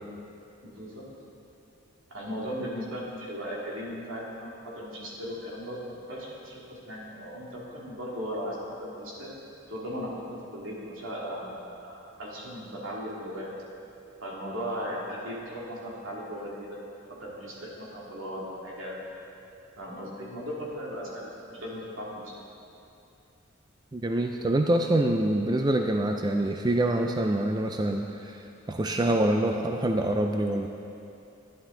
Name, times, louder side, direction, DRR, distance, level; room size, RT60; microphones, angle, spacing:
voice 1, 0.6-1.1 2.1-5.8 6.1-9.3 9.7-10.2 10.5-13.5 14.2-16.8 17.1-19.0 19.8-22.3, equal, 80° right, -5 dB, 2.5 m, -37 dB
voice 2, 23.9-30.7, right 1 dB, 20° right, 4 dB, 0.3 m, -26 dB
11.5 x 11.0 x 3.9 m, 2.7 s
head